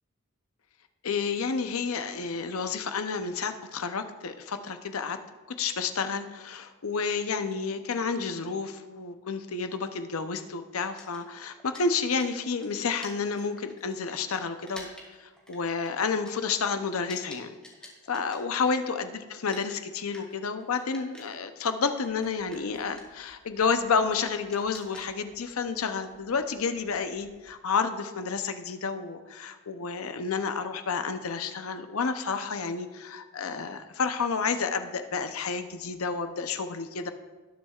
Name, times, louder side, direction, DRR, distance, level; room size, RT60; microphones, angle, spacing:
voice 1, 1.0-5.2 5.6-14.9 15.2-17.5 18.1-37.1, left 5 dB, 80° left, 8 dB, 0.7 m, -30 dB
sound 1, 10.8-19.0 19.3-27.5, left 1 dB, 5° left, 1.9 m, -51 dB
19.0 x 7.2 x 2.4 m, 1.3 s
head